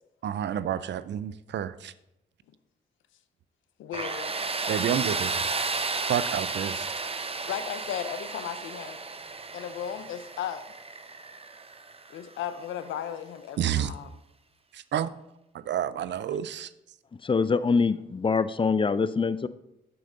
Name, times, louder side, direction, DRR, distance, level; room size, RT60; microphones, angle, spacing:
voice 1, 0.2-1.9 4.7-5.4 6.1-6.9 13.6-13.9 14.9-15.1 15.7-16.7, right 10 dB, 65° right, 16 dB, 0.4 m, -29 dB
voice 2, 3.8-4.3 7.5-9.0 9.5-10.6 12.1-14.1, left 9 dB, 85° left, 12 dB, 0.6 m, -35 dB
Tools, 3.9-12.7, right 4 dB, 30° right, 0.7 m, -33 dB
voice 3, 17.2-19.5, left 5 dB, 25° left, 15 dB, 0.4 m, -24 dB
7.7 x 6.5 x 3.8 m, 0.88 s
supercardioid pair, 50°, 20 cm